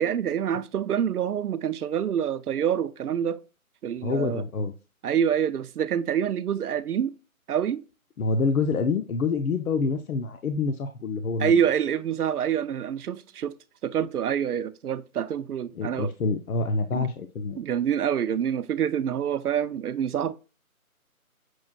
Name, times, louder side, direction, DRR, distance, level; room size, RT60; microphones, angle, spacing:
voice 1, 0.0-3.4 3.8-4.4 5.0-7.1 7.5-7.8 11.4-13.5 13.8-16.1 16.9-17.1 17.6-20.3, right 9 dB, 85° right, 0.5 m, -26 dB
voice 2, 4.0-4.7 8.2-11.6 15.8-17.6, left 4 dB, 70° left, 0.6 m, -27 dB
6.1 x 2.2 x 2.3 m
figure-of-eight pair, 165°, 44 cm